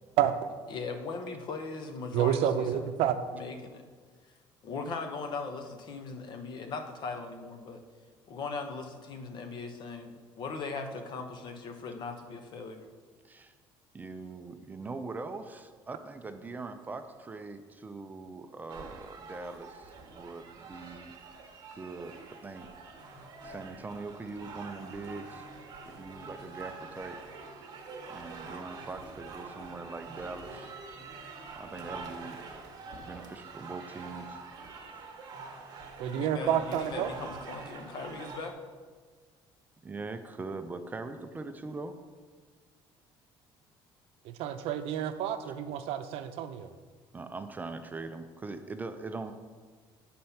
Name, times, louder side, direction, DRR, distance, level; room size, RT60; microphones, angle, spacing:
voice 1, 0.7-2.9 3.3-3.8 4.6-7.8 8.3-12.9 36.0-38.6, left 4 dB, 50° left, 6 dB, 0.9 m, -39 dB
voice 2, 2.1-3.2 36.0-37.1 44.2-46.8, right 10 dB, 75° right, 9 dB, 0.6 m, -29 dB
voice 3, 13.9-21.1 21.7-22.7 23.4-25.5 25.8-27.2 28.0-30.7 31.6-32.4 33.0-34.4 39.8-41.9 47.1-49.3, right 3 dB, 15° right, 8 dB, 0.4 m, -41 dB
sound 1, 18.7-38.5, right 4 dB, 45° right, 1.2 m, -46 dB
9.5 x 4.3 x 5.7 m, 1.5 s
cardioid pair, 150°, 10 cm